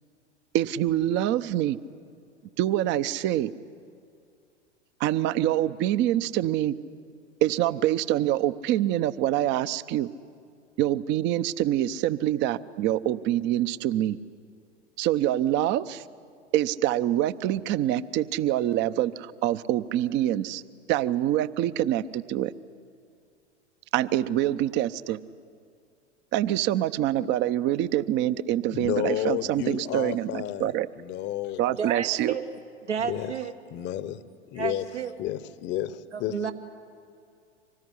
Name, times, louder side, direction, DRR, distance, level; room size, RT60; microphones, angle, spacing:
voice 1, 0.5-1.8 2.6-3.5 5.0-6.7 7.4-10.1 10.8-14.2 15.0-16.0 16.5-20.6 20.9-22.5 23.9-25.2 26.3-30.9 31.6-32.3, right 13 dB, 30° right, 15 dB, 0.7 m, -25 dB
voice 2, 28.7-31.8 33.0-33.3 33.7-34.2 34.5-34.8 35.2-36.4, left 12 dB, 30° left, 16 dB, 0.9 m, -31 dB
voice 3, 31.8-32.4 32.9-33.5 34.5-35.1 36.1-36.5, right 7 dB, 75° right, 2 dB, 1.5 m, -31 dB
25.0 x 19.5 x 9.9 m, 2.3 s
figure-of-eight pair, 90°, 35 cm